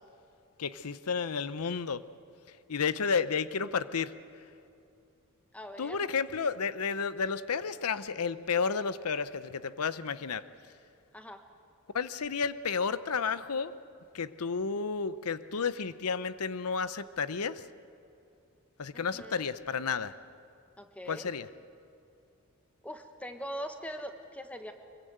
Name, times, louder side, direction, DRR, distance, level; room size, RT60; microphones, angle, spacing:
voice 1, 0.6-2.0 2.7-4.1 5.8-10.4 11.9-13.7 14.1-17.6 18.8-20.1 21.1-21.5, left 5 dB, 90° left, 14 dB, 0.7 m, -32 dB
voice 2, 5.5-6.0 11.1-11.4 18.9-19.5 20.8-21.3 22.8-24.7, equal, 5° left, 6 dB, 1.3 m, -42 dB
24.5 x 23.0 x 8.0 m, 2.6 s
head